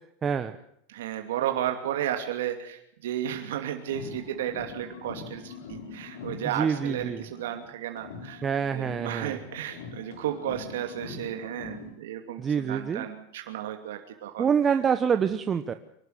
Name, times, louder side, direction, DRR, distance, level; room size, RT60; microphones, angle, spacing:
voice 1, 0.2-0.5 6.5-7.2 8.4-9.4 12.4-13.1 14.4-15.7, right 7 dB, 20° right, 9 dB, 1.0 m, -26 dB
voice 2, 0.9-8.4 8.7-14.5, right 11 dB, 85° right, 5 dB, 2.7 m, -33 dB
sound 1, 3.8-7.7 8.0-11.9, left 4 dB, 80° left, 6.8 m, -43 dB
24.0 x 12.5 x 9.2 m, 0.72 s
supercardioid pair, 145°, 0 cm